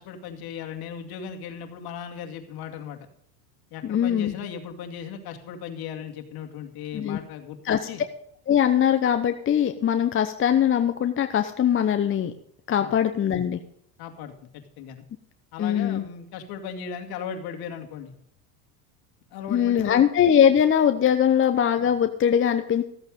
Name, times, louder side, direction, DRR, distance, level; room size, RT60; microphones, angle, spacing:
voice 1, 0.0-3.0 3.7-8.0 12.8-12.9 14.0-15.0 15.5-18.1 19.3-20.0, left 7 dB, 55° left, 4 dB, 2.4 m, -37 dB
voice 2, 3.8-4.3 6.9-7.2 7.6-7.8 8.5-12.3 12.7-13.6 15.6-16.0 19.5-22.8, left 9 dB, 25° left, 8 dB, 0.9 m, -21 dB
14.0 x 8.0 x 5.2 m, 0.71 s
supercardioid pair, 100°, 45 cm